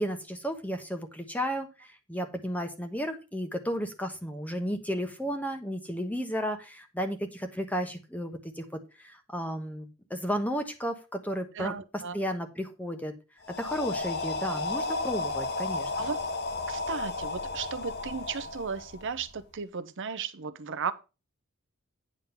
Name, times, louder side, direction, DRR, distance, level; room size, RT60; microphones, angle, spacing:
voice 1, 0.0-8.6 9.0-11.7 12.1-13.1 13.6-15.9, equal, 5° left, 1.1 m, -33 dB
voice 2, 11.5-12.2 16.0-16.2 16.7-20.9, right 6 dB, 55° right, 0.7 m, -35 dB
sound 1, 13.4-19.4, left 3 dB, 50° left, 1.3 m, -33 dB
9.7 x 3.8 x 7.0 m
head